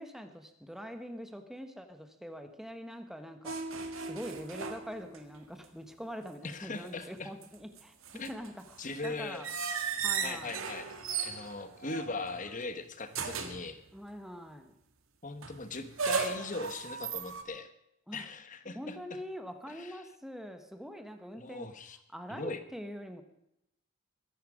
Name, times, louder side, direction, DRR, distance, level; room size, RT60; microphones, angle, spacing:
voice 1, 0.0-3.6 4.0-8.7 9.0-9.5 10.0-10.6 13.9-14.7 18.1-18.3 18.7-21.7 22.1-23.2, equal, ahead, 7 dB, 1.4 m, -44 dB
sound 1, 3.4-5.4 5.6-5.7 7.2-12.5 13.1-13.7 15.4-17.4, right 5 dB, 85° right, 1.9 m, -36 dB
voice 2, 6.4-7.3 8.1-8.4 8.8-9.5 10.2-10.9 11.2-13.8 15.2-17.7 18.1-19.0 19.7-20.0 21.4-22.0 22.3-22.6, left 3 dB, 40° left, 10 dB, 1.3 m, -40 dB
22.5 x 10.5 x 5.0 m, 0.79 s
head